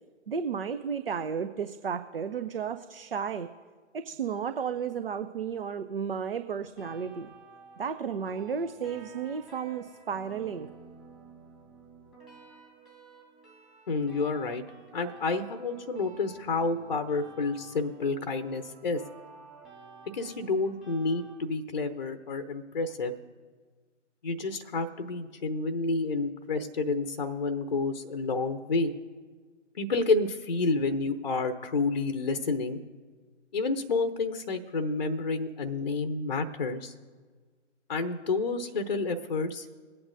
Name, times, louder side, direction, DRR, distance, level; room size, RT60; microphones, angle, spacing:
voice 1, 0.3-3.5 3.9-7.3 7.8-10.7, right 6 dB, 50° right, 9 dB, 0.6 m, -33 dB
sound 1, 6.7-21.3, right 4 dB, ahead, 1.5 m, -52 dB
voice 2, 13.9-14.6 14.9-19.0 20.1-23.1 24.2-28.9 29.8-32.8 33.5-36.9 37.9-39.7, left 3 dB, 40° left, 9 dB, 0.7 m, -29 dB
21.0 x 8.7 x 2.5 m, 1.5 s
figure-of-eight pair, 140°, 36 cm